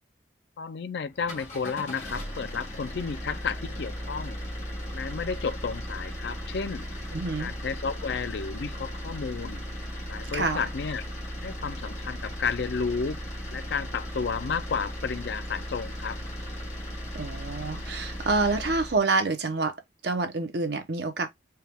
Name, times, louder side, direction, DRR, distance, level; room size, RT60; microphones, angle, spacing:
voice 1, 0.6-4.4 4.9-6.9 7.4-9.6 10.1-11.0 11.4-13.2 13.5-16.2, left 5 dB, 65° left, 0.4 m, -32 dB
sound 1, 1.1-19.0, equal, 40° left, 1.4 m, -37 dB
voice 2, 7.1-7.5 10.3-10.6 17.1-19.7 20.0-21.3, right 3 dB, 65° right, 0.8 m, -27 dB
4.5 x 2.3 x 3.4 m
head